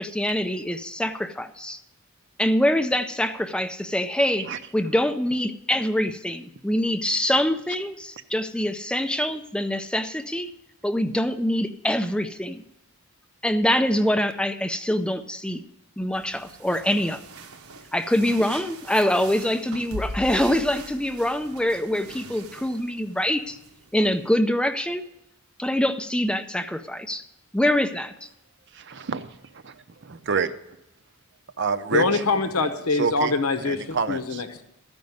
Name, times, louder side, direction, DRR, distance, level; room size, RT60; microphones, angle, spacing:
voice 1, 0.0-1.8 2.4-10.5 10.8-12.6 13.4-15.6 16.0-17.2 17.9-23.6 23.9-25.0 25.6-27.2 27.5-28.3, left 1 dB, 5° left, 8 dB, 0.4 m, -24 dB
sound 1, 16.1-24.3, right 2 dB, 85° right, 1.1 m, -41 dB
voice 2, 28.7-29.8 30.0-30.5 31.6-32.2 33.0-33.3 33.7-34.4, right 5 dB, 55° right, 12 dB, 0.6 m, -28 dB
voice 3, 31.9-34.6, left 3 dB, 85° left, 8 dB, 0.9 m, -24 dB
13.5 x 5.3 x 9.4 m, 0.86 s
head